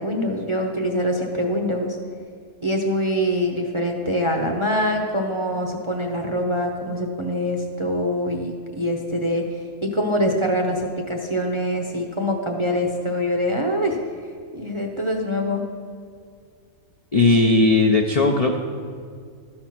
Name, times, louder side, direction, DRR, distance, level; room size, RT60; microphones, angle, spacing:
voice 1, 0.0-2.0 2.6-9.4 9.8-14.0 14.5-15.6, equal, 35° right, 1 dB, 0.5 m, -24 dB
voice 2, 17.1-18.6, left 3 dB, 60° left, 2 dB, 0.4 m, -17 dB
13.0 x 4.4 x 5.9 m, 2.1 s
omnidirectional pair, 1.5 m